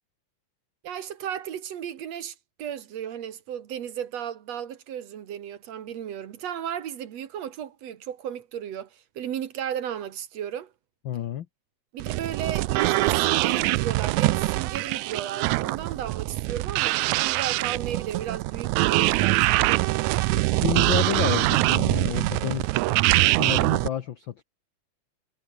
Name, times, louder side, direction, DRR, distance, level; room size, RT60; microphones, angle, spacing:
voice 1, 0.8-10.7 11.9-19.8, right 9 dB, 60° right, 2.4 m, -34 dB
voice 2, 11.0-11.5 20.3-24.4, left 10 dB, 90° left, 1.0 m, -31 dB
sound 1, 12.0-23.9, right 19 dB, 80° right, 1.9 m, -23 dB
omnidirectional pair, 3.6 m